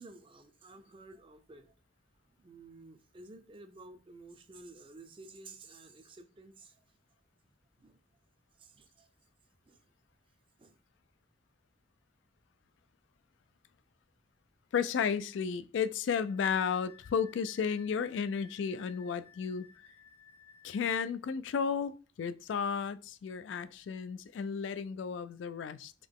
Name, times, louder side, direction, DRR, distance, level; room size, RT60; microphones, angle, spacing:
voice 1, 0.0-1.7 2.4-6.8 7.8-8.0 8.5-9.1 9.6-9.9 10.6-10.8, right 2 dB, 30° right, 0.5 m, -53 dB
voice 2, 14.7-19.7 20.6-21.9 22.2-25.9, left 6 dB, 85° left, 0.3 m, -33 dB
Wind instrument woodwind instrument, 16.3-21.0, left 7 dB, 35° left, 0.5 m, -58 dB
3.9 x 3.1 x 3.5 m
head